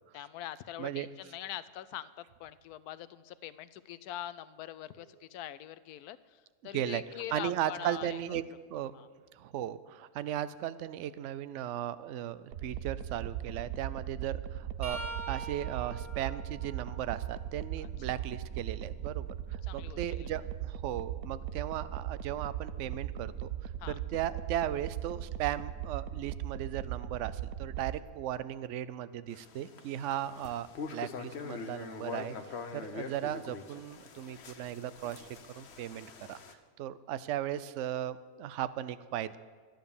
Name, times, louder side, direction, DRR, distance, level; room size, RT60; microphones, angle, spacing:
voice 1, 0.1-8.2 8.9-9.1 17.8-17.9 19.6-20.3 23.8-24.0, left 12 dB, 90° left, 16 dB, 1.1 m, -43 dB
voice 2, 7.3-8.4 8.7-8.9 9.3-35.3 35.5-36.4 36.8-39.4, right 11 dB, 65° right, 15 dB, 0.8 m, -37 dB
sound 1, 12.5-28.0, right 11 dB, 85° right, 1.2 m, -39 dB
sound 2, 14.8-18.6 19.1-21.1 24.0-24.2 25.4-25.6 26.9-27.0, right 3 dB, 20° right, 3.7 m, -47 dB
sound 3, 29.3-36.5, left 5 dB, 50° left, 1.1 m, -44 dB
13.0 x 10.5 x 7.0 m, 1.5 s
omnidirectional pair, 1.6 m